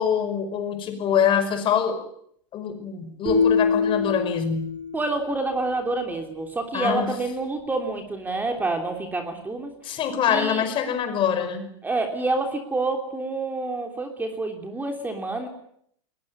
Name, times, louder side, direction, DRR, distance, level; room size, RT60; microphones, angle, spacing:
voice 1, 0.0-2.1 2.5-4.8 6.7-7.1 9.8-11.7, left 8 dB, 35° left, 8 dB, 5.3 m, -24 dB
sound 1, 3.3-5.4, left 5 dB, 25° right, 4.1 m, -24 dB
voice 2, 4.9-10.0 10.3-10.6 11.8-15.5, right 3 dB, 10° right, 5 dB, 3.1 m, -28 dB
20.5 x 20.5 x 9.6 m, 0.68 s
hypercardioid pair, 125°, 16 cm